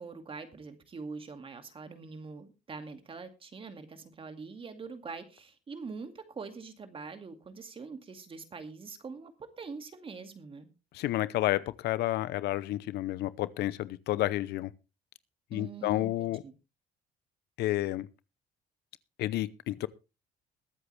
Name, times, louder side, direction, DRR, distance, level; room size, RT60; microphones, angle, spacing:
voice 1, 0.0-10.7 15.5-16.5, right 4 dB, 30° right, 2.2 m, -44 dB
voice 2, 10.9-14.7 15.5-16.4 17.6-18.1 19.2-19.9, left 15 dB, 75° left, 0.7 m, -30 dB
21.5 x 8.0 x 3.3 m
cardioid pair, 110°, 17 cm